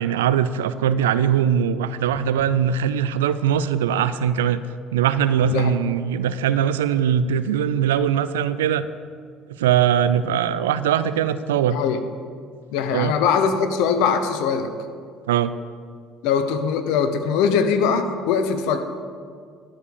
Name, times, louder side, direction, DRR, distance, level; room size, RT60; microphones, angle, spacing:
voice 1, 0.0-4.6 4.9-8.9 9.5-11.8 12.9-13.1 15.3-15.5, right 9 dB, 80° right, 14 dB, 0.4 m, -21 dB
voice 2, 11.7-12.0 12.7-14.7 16.2-18.8, left 6 dB, 70° left, 8 dB, 0.8 m, -21 dB
12.0 x 4.9 x 7.0 m, 2.1 s
hypercardioid pair, 60°, 0 cm